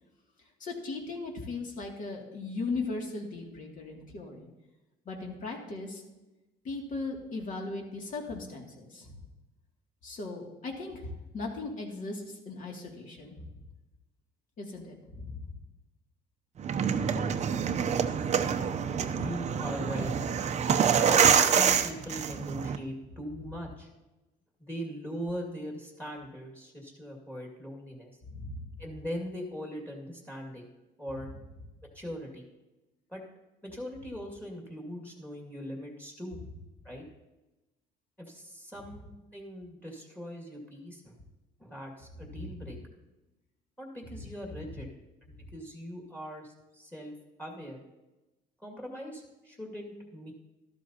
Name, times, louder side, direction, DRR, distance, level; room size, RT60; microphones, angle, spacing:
voice 1, 0.6-4.5 5.1-6.0 6.6-9.2 10.0-13.5 14.6-15.5 28.3-28.7 42.4-42.5, left 3 dB, 50° left, 0 dB, 2.5 m, -38 dB
sound 1, 16.6-22.8, right 7 dB, 40° right, 0.7 m, -26 dB
voice 2, 18.9-20.1 21.0-23.9 24.6-28.1 28.8-30.7 31.0-31.3 31.9-32.5 33.1-33.2 33.6-36.4 36.8-37.0 38.2-41.1 41.6-42.8 43.8-44.9 45.2-47.1 47.4-47.8 48.6-50.3, equal, 10° left, 0 dB, 2.2 m, -40 dB
13.0 x 12.0 x 2.9 m, 1.0 s
cardioid pair, 110°, 17 cm